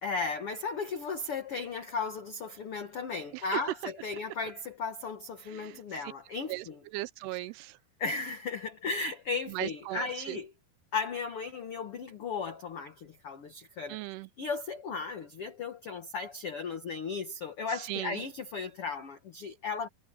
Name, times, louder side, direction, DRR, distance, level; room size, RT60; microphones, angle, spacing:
voice 1, 0.0-6.8 8.0-10.5 10.9-14.0 14.4-19.9, left 4 dB, 80° left, 1.3 m, -35 dB
voice 2, 5.5-5.8 6.5-6.7 6.9-7.8 9.5-10.4 13.9-14.3 17.9-18.2, right 18 dB, 85° right, 2.6 m, -37 dB
omnidirectional pair, 4.7 m